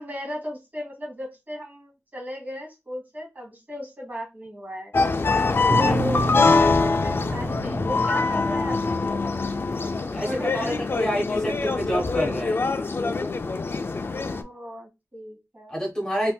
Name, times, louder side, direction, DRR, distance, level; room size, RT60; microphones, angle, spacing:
voice 1, 0.0-4.9 5.6-9.4 10.0-10.9 14.1-15.7, equal, 30° right, 0 dB, 1.4 m, -36 dB
sound 1, 4.9-14.4, left 3 dB, 40° left, 0.3 m, -24 dB
sound 2, 5.7-10.2, right 1 dB, 50° right, 0.9 m, -30 dB
voice 2, 10.1-12.6 15.7-16.3, equal, 10° left, -1 dB, 1.1 m, -28 dB
3.4 x 2.7 x 2.3 m, 0.22 s
wide cardioid pair, 110°, 6 cm